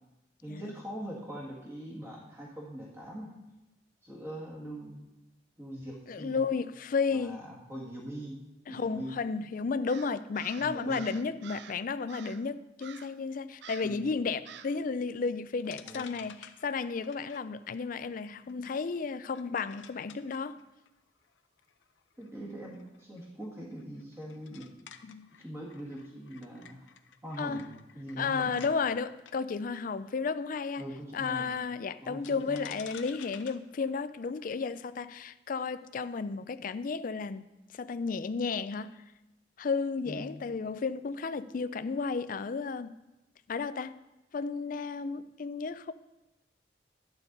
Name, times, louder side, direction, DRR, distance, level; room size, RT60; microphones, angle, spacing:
voice 1, 0.4-3.3 4.0-5.1 5.6-6.4 7.1-8.4 8.7-9.1 10.6-11.0 13.8-14.1 15.8-16.1 22.2-24.7 25.4-26.9 27.2-27.6 27.9-28.6 30.8-31.5 32.0-32.7 40.0-40.3, right 1 dB, 15° right, 1.7 m, -42 dB
voice 2, 6.1-7.4 8.7-20.6 25.0-25.3 27.4-27.7 28.2-30.9 31.1-39.0 39.6-42.9 43.5-44.0 44.3-45.9, left 5 dB, 45° left, 0.4 m, -33 dB
Crow, 9.9-11.8 12.1-12.5 12.8-13.2 13.6-14.0 14.5-14.8, right 8 dB, 65° right, 0.4 m, -49 dB
sound 1, 15.2-15.3 15.6-28.7 29.2-29.3 32.2-35.0, left 8 dB, 85° left, 0.6 m, -53 dB
12.0 x 8.1 x 3.9 m
head